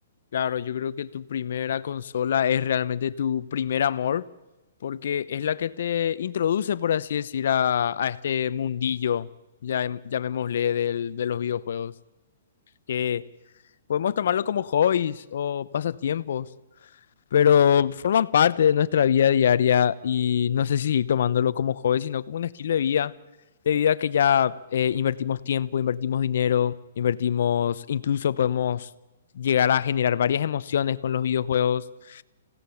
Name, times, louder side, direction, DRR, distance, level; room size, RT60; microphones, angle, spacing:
voice 1, 0.3-4.2 4.8-9.3 9.6-11.9 12.9-13.2 13.9-16.5 17.3-23.1 23.6-28.9 29.3-32.2, left 9 dB, 65° left, 17 dB, 0.8 m, -24 dB
26.5 x 16.5 x 7.2 m, 1.1 s
hypercardioid pair, 160°, 0 cm